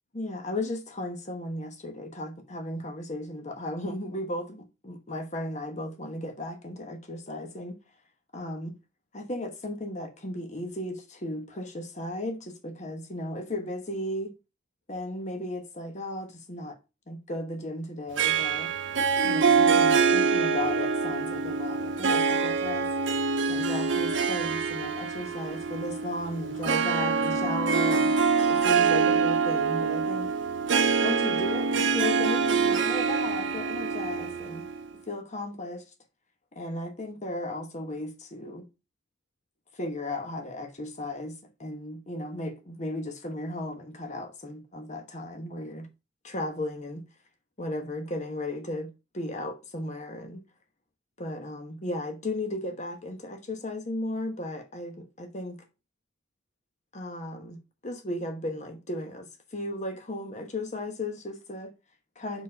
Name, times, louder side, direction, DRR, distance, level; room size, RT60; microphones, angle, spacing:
voice 1, 0.1-7.8 8.3-8.7 9.1-14.3 14.9-16.8 17.1-18.7 19.2-22.9 23.5-28.1 28.5-30.4 31.0-34.6 35.1-35.8 36.5-38.7 39.7-45.9 46.2-47.0 47.6-50.4 51.2-55.6 56.9-61.7 62.2-62.4, left 1 dB, 40° left, 1.1 m, -35 dB
Harp, 18.2-34.9, right 5 dB, 85° right, 0.7 m, -25 dB
4.6 x 4.2 x 5.3 m
head